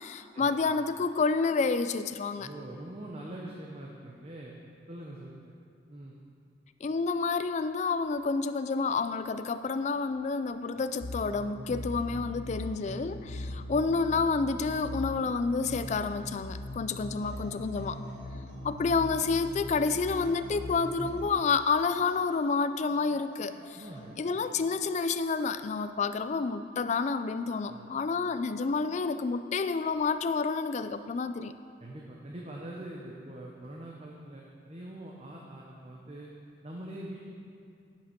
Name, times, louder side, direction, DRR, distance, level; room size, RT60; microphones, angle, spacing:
voice 1, 0.0-2.5 6.8-18.0 18.6-23.8 24.2-31.5, left 4 dB, 40° left, 11 dB, 0.3 m, -29 dB
voice 2, 2.4-4.5 4.9-5.5 5.9-6.2 10.7-10.8 13.2-13.6 21.0-21.1 23.8-24.2 27.7-27.9 31.8-36.3 36.6-37.3, right 1 dB, 35° right, -2 dB, 0.8 m, -43 dB
sound 1, 11.0-21.3, left 1 dB, 75° left, 0.7 m, -40 dB
sound 2, 17.2-19.4 20.1-22.5 22.9-25.1 26.1-26.4, right 1 dB, 85° right, 2.1 m, -54 dB
9.9 x 5.8 x 6.0 m, 2.4 s
head